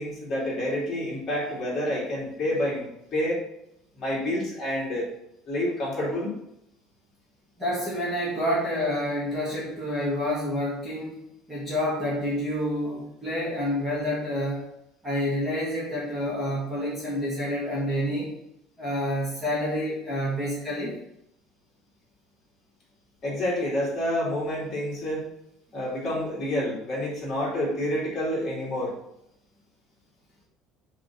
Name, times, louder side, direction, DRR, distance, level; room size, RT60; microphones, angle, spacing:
voice 1, 0.0-3.4 4.0-5.1 5.4-6.3 23.2-25.3 25.7-28.9, left 1 dB, 25° left, -6 dB, 2.9 m, -28 dB
voice 2, 7.6-11.2 11.5-14.7 15.0-18.3 18.8-21.0, equal, 5° right, -8 dB, 1.9 m, -28 dB
5.0 x 4.9 x 5.9 m, 0.80 s
cardioid pair, 165°, 0 cm